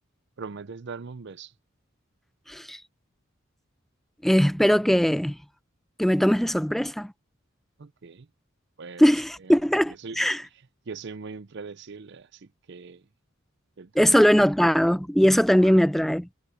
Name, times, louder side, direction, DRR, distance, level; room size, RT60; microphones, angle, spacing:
voice 1, 0.4-1.5 7.8-8.3 8.8-9.1 9.4-9.6 10.0-10.2 10.9-13.0 13.8-14.3 15.6-15.8, right 4 dB, 60° right, 0.6 m, -40 dB
voice 2, 4.2-5.4 6.0-7.1 9.0-10.4 14.0-16.3, equal, ahead, 0.3 m, -20 dB
head